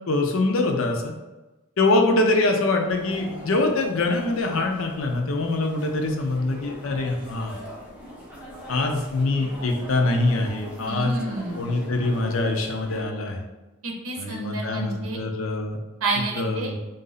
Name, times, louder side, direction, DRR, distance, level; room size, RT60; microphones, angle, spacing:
voice 1, 0.1-1.1 1.8-7.6 8.7-11.2 11.5-13.5 14.2-15.8 16.4-16.8, left 2 dB, 75° left, 3 dB, 0.6 m, -24 dB
sound 1, 2.9-13.0, equal, 5° right, 0.9 m, -41 dB
voice 2, 10.9-11.7 13.8-15.2 16.0-16.7, right 3 dB, 90° right, 1 dB, 0.7 m, -29 dB
3.7 x 2.7 x 4.0 m, 1.1 s
head